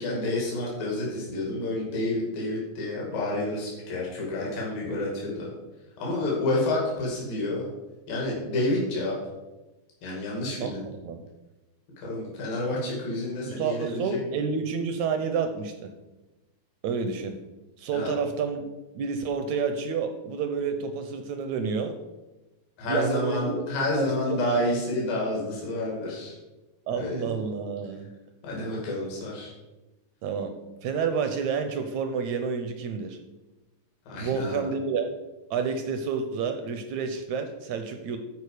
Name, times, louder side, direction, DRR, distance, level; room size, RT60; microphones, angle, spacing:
voice 1, 0.0-5.5 6.0-7.7 8.1-9.1 10.0-10.8 12.0-14.2 17.9-18.1 22.8-26.4 26.9-27.4 28.4-29.5 34.1-34.7, left 1 dB, 80° left, -4 dB, 4.1 m, -29 dB
voice 2, 13.4-15.9 16.8-17.3 17.8-18.7 18.9-22.0 22.8-23.6 23.9-24.4 26.9-28.1 30.2-30.5 30.8-33.2 34.2-35.1 35.5-38.2, right 5 dB, 75° right, 7 dB, 1.7 m, -29 dB
13.0 x 4.9 x 4.9 m, 1.1 s
omnidirectional pair, 4.0 m